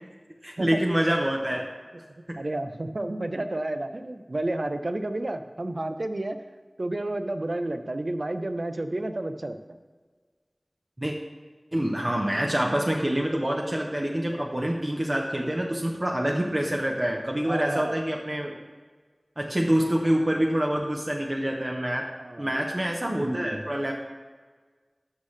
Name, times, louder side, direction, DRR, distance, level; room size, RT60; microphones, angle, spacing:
voice 1, 0.4-1.7 11.0-11.1 11.7-18.5 19.4-22.1 22.4-23.9, right 1 dB, 35° right, 0 dB, 0.9 m, -26 dB
voice 2, 2.4-6.4 6.8-9.6 17.5-18.0 22.2-22.5, right 1 dB, 65° right, 8 dB, 0.6 m, -31 dB
12.5 x 5.7 x 3.3 m, 1.5 s
wide cardioid pair, 45°, 0 cm